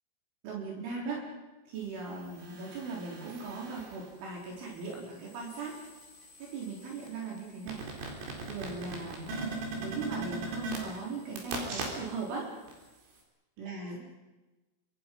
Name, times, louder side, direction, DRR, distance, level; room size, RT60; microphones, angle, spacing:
voice 1, 0.4-1.3 1.7-5.8 6.4-7.8 8.5-9.3 9.8-12.5 13.6-14.1, right 4 dB, 70° right, -2 dB, 6.4 m, -39 dB
sound 1, 2.1-4.1 4.6-12.3 12.7-12.8, right 3 dB, 90° right, 6.9 m, -41 dB
27.0 x 26.0 x 5.4 m, 1.1 s
omnidirectional pair, 5.7 m